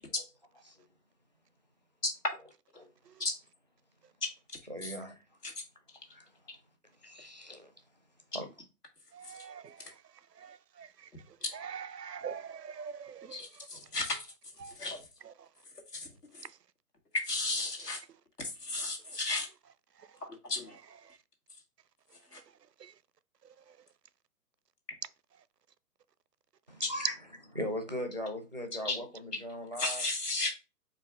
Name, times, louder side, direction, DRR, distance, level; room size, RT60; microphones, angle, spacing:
voice 1, 4.7-5.2 6.1-6.3 7.0-7.7 8.3-8.5 26.7-27.1 27.5-30.0, equal, 30° right, 0.4 m, -39 dB
voice 2, 9.1-9.8 10.4-10.9 11.5-13.4 14.6-14.7 22.8-22.9, right 7 dB, 85° right, 0.6 m, -43 dB
voice 3, 13.3-14.2 14.8-15.0 15.9-16.1 16.3-16.4 17.2-18.0 18.6-19.5 20.4-20.8 22.3-22.4 26.8-26.9 28.8-29.0 29.8-30.5, left 2 dB, 75° left, 1.7 m, -34 dB
4.6 x 2.5 x 4.5 m
figure-of-eight pair, 135°, 47 cm